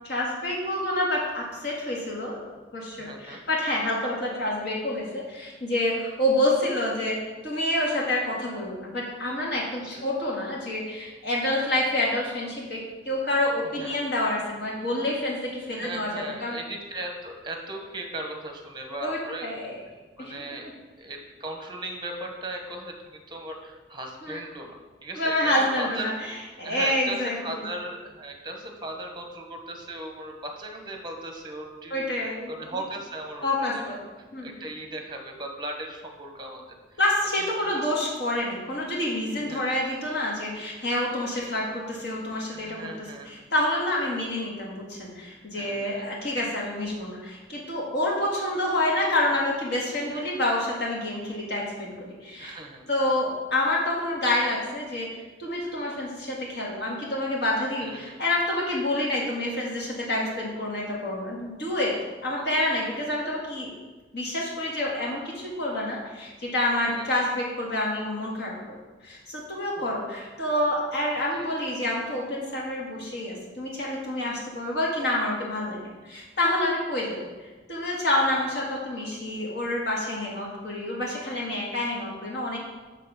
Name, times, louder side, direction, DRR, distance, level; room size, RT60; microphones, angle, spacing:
voice 1, 0.0-2.4 2.7-16.6 19.0-19.8 20.2-20.3 24.2-24.4 25.1-27.6 31.9-32.5 33.4-34.0 34.3-34.5 37.0-42.9 43.2-51.9 52.2-52.6 52.9-61.9 62.2-63.7 64.1-68.8 69.0-75.8 76.0-77.3 77.7-82.6, left 1 dB, 60° left, -3 dB, 1.7 m, -28 dB
voice 2, 3.0-3.4 9.8-10.0 13.8-14.0 15.7-19.6 20.2-20.7 21.0-24.7 25.0-26.0 26.6-32.1 32.5-34.0 34.4-36.7 36.9-37.0 37.4-37.9 39.4-39.7 42.5-43.5 45.5-46.1 50.1-50.2 52.4-52.9 57.8-58.2 62.3-62.5 66.9-67.1 69.8-69.9 71.3-71.5, right 2 dB, 25° right, 3 dB, 0.9 m, -38 dB
7.5 x 3.6 x 5.8 m, 1.3 s
head